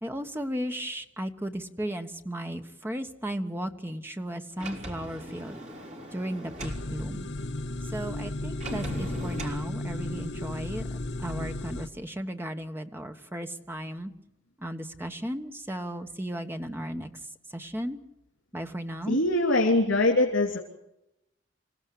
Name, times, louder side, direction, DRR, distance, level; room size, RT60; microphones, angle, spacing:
voice 1, 0.0-5.6 6.1-7.3 7.9-14.1 14.6-17.1 17.5-18.0 18.5-19.2, equal, 10° right, 6 dB, 1.1 m, -35 dB
Sliding door, 4.6-6.8 8.6-9.6, right 1 dB, 35° right, 3.5 m, -39 dB
sound 1, 6.6-11.9, left 2 dB, 60° left, 1.0 m, -34 dB
voice 2, 19.1-20.6, left 2 dB, 90° left, 0 dB, 3.0 m, -23 dB
27.5 x 16.5 x 8.4 m, 0.87 s
head